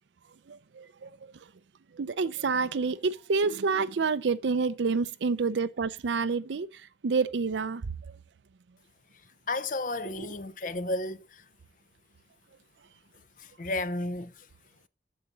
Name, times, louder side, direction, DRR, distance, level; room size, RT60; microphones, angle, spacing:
voice 1, 0.5-1.1 2.0-6.7 7.0-7.8, right 4 dB, 85° right, 0.5 m, -28 dB
voice 2, 9.5-11.4 13.4-14.5, left 2 dB, 45° left, 0.6 m, -33 dB
8.5 x 7.2 x 4.0 m
head